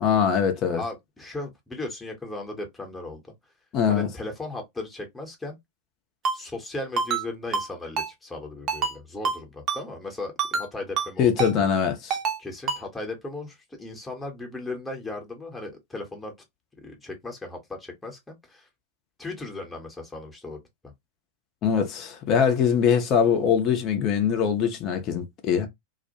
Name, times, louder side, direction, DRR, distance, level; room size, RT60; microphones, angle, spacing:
voice 1, 0.0-0.8 3.7-4.1 11.2-12.2 21.6-25.7, left 7 dB, 35° left, 0.5 m, -22 dB
voice 2, 0.7-3.2 3.9-5.6 6.3-11.7 12.4-16.3 16.8-18.7 19.2-20.6, left 2 dB, 10° left, 0.8 m, -36 dB
Ringtone, 6.2-6.4 7.0-7.2 7.5-7.7 8.0-8.1 8.7-8.9 9.2-9.4 9.7-9.8 10.4-10.7 11.0-11.1 11.4-11.5 12.1-12.4 12.7-12.8, right 5 dB, 30° right, 0.6 m, -26 dB
2.4 x 2.1 x 2.7 m
figure-of-eight pair, 90°, 0 cm